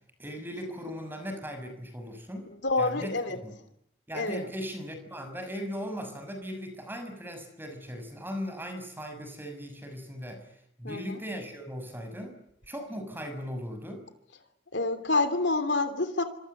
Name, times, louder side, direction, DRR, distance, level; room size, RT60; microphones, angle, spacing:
voice 1, 0.2-2.5 2.8-3.5 4.1-10.5 10.8-12.3 12.7-14.0, equal, 10° right, 7 dB, 6.2 m, -38 dB
voice 2, 2.5-3.4 4.1-4.4 10.8-11.2 14.7-16.2, left 3 dB, 65° left, 10 dB, 3.2 m, -28 dB
27.5 x 25.5 x 8.0 m, 0.77 s
head